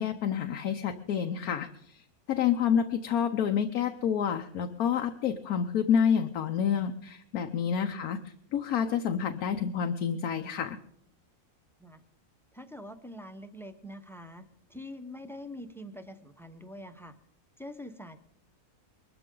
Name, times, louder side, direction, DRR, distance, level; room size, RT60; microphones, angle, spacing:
voice 1, 0.0-2.0 2.3-8.2 8.5-10.8, left 8 dB, 90° left, 5 dB, 1.3 m, -28 dB
voice 2, 12.5-14.4 14.7-17.1 17.6-18.2, left 1 dB, ahead, 8 dB, 0.6 m, -44 dB
22.0 x 13.0 x 3.8 m, 0.70 s
omnidirectional pair, 1.5 m